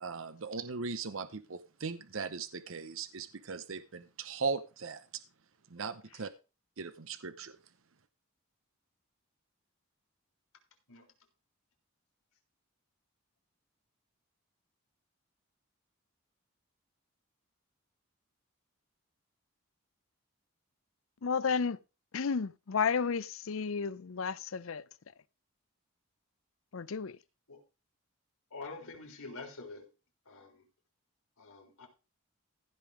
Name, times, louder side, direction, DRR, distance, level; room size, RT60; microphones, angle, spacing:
voice 1, 0.0-5.2 5.7-6.3 6.8-7.6, right 4 dB, 70° right, 0.8 m, -38 dB
voice 2, 21.2-21.8 22.1-24.8 26.7-27.1, left 5 dB, 70° left, 0.5 m, -32 dB
voice 3, 28.5-29.9 30.3-30.6 31.4-31.9, left 3 dB, 90° left, 3.6 m, -46 dB
15.5 x 5.5 x 4.9 m
head